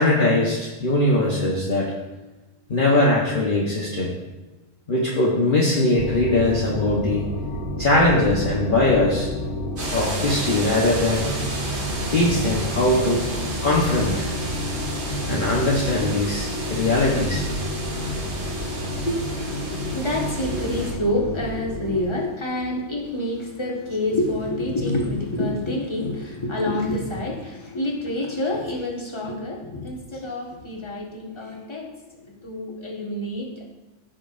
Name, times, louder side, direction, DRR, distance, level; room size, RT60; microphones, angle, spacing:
voice 1, 0.0-1.9 2.7-4.1 4.9-7.3 7.8-9.3 9.9-11.3 12.1-13.3 13.6-14.3 15.3-17.5 19.1-19.2, left 2 dB, 45° left, -4 dB, 1.3 m, -21 dB
sound 1, 5.9-22.0, left 1 dB, 70° left, 2.4 m, -30 dB
sound 2, 9.8-20.9, right 2 dB, 60° right, 2.2 m, -32 dB
voice 2, 19.5-33.7, left 1 dB, 20° left, -3 dB, 1.7 m, -27 dB
15.5 x 6.1 x 2.6 m, 1.1 s
omnidirectional pair, 1.3 m